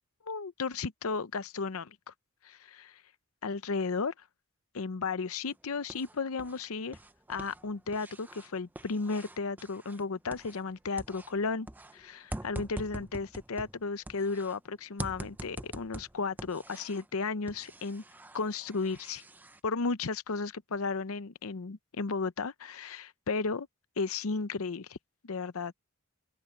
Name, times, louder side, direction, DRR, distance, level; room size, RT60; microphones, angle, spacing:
voice 1, 0.3-2.1 2.4-3.0 3.4-4.1 4.7-7.0 7.3-11.7 11.9-18.0 18.3-19.2 19.6-23.7 24.0-25.0 25.2-25.7, left 4 dB, 80° left, 0.7 m, -34 dB
sound 1, 5.5-6.6 6.9-10.7 11.0-14.6 15.0-17.1 17.5-19.6, right 1 dB, 10° right, 0.5 m, -45 dB
open air
head